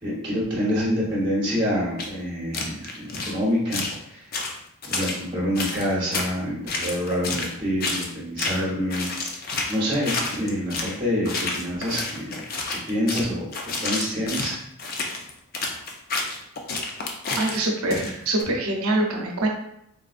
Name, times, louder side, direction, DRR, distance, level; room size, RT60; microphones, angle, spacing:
voice 1, 0.0-4.3 4.9-12.4 12.9-13.5 13.8-14.6, equal, 20° right, -7 dB, 1.1 m, -27 dB
sound 1, 2.0-2.1 2.5-3.3 3.7-4.0 4.3-5.2 5.5-6.3 6.7-7.5 7.8-8.1 8.4-8.6 8.9-11.0 11.2-18.4, left 3 dB, 40° left, 0.4 m, -29 dB
voice 2, 17.4-19.5, right 2 dB, 75° right, 1 dB, 0.7 m, -24 dB
3.7 x 2.4 x 2.4 m, 0.78 s
head